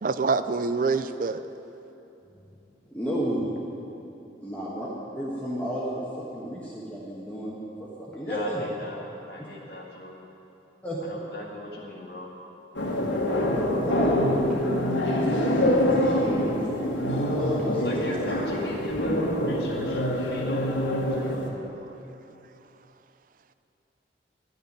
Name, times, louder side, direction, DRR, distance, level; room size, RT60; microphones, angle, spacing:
voice 1, 0.0-1.4, right 4 dB, 45° right, 12 dB, 0.4 m, -25 dB
voice 2, 2.9-3.5 4.4-4.9 5.1-8.6 10.8-11.0 13.8-14.8 15.2-18.2, right 1 dB, 10° left, -7 dB, 1.5 m, -33 dB
voice 3, 8.2-10.2 11.0-12.3 17.8-21.4, left 1 dB, 60° left, -2 dB, 1.7 m, -38 dB
sound 1, 12.7-21.5, left 1 dB, 85° left, 2.0 m, -25 dB
12.0 x 6.8 x 9.7 m, 2.9 s
head